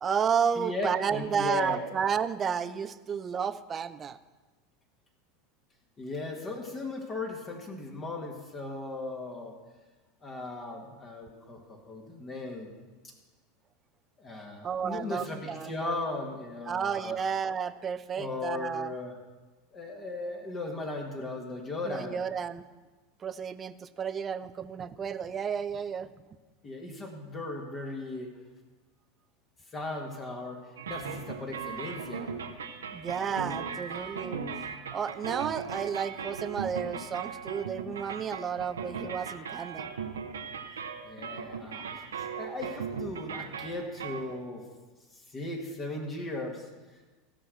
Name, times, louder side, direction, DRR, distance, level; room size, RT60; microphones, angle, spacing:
voice 1, 0.0-4.2 14.6-15.9 16.7-18.9 21.8-22.6 23.2-26.1 32.9-34.4 34.9-39.9, right 7 dB, 30° right, 13 dB, 0.6 m, -32 dB
voice 2, 0.6-1.8 6.0-9.5 10.2-12.7 13.0-13.1 14.2-17.2 18.2-19.2 19.7-22.2 26.6-28.3 29.7-32.3 41.0-44.6 45.1-47.1, left 2 dB, 30° left, 0 dB, 2.0 m, -37 dB
sound 1, 30.8-44.4, right 6 dB, 80° right, 0.9 m, -38 dB
15.5 x 6.2 x 6.7 m, 1.3 s
figure-of-eight pair, 85°, 0 cm